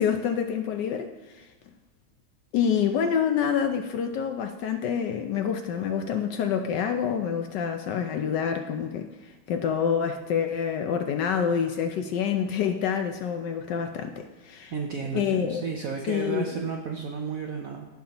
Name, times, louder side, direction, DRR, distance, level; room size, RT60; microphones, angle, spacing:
voice 1, 0.0-1.5 2.5-14.7 15.1-15.6 16.1-16.5, left 7 dB, 70° left, 6 dB, 1.1 m, -27 dB
voice 2, 14.7-17.9, right 5 dB, 70° right, 2 dB, 0.8 m, -32 dB
15.5 x 5.7 x 2.9 m, 1.2 s
omnidirectional pair, 2.3 m